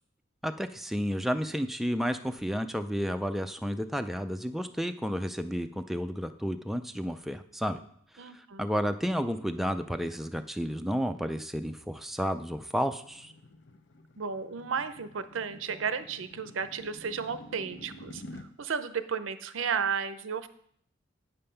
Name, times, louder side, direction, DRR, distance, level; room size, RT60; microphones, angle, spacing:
voice 1, 0.4-7.8 8.1-13.3, equal, ahead, 7 dB, 0.3 m, -31 dB
voice 2, 8.2-8.7 14.2-20.5, right 6 dB, 80° right, 12 dB, 0.6 m, -33 dB
sound 1, 12.0-18.5, left 1 dB, 65° left, 0.7 m, -49 dB
8.6 x 5.3 x 5.7 m, 0.65 s
head